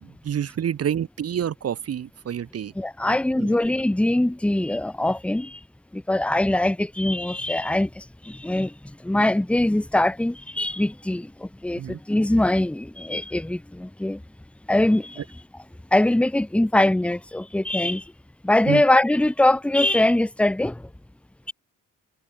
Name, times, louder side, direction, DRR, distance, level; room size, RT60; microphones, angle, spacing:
voice 1, 0.0-2.7 3.1-3.6 11.8-12.0 18.7-18.8, right 9 dB, 55° right, 1.7 m, -28 dB
voice 2, 2.7-5.6 5.9-14.2 14.7-15.4 15.9-18.1 18.4-20.9, left 1 dB, 5° left, 1.0 m, -22 dB
cardioid pair, 90°, 30 cm